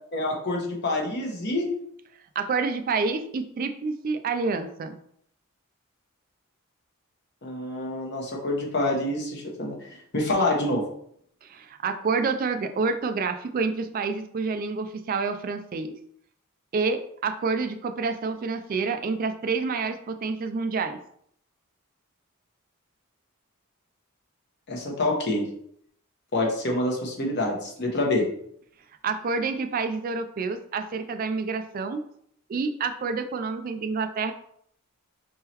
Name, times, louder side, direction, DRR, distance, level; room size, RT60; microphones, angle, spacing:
voice 1, 0.1-1.7 7.4-10.8 24.7-25.5 26.3-28.3, left 2 dB, 50° left, -1 dB, 1.0 m, -27 dB
voice 2, 2.4-5.0 11.4-15.9 16.7-21.0 29.0-32.0 32.5-34.3, right 4 dB, 40° right, 8 dB, 0.3 m, -28 dB
4.2 x 3.7 x 2.9 m, 0.67 s
head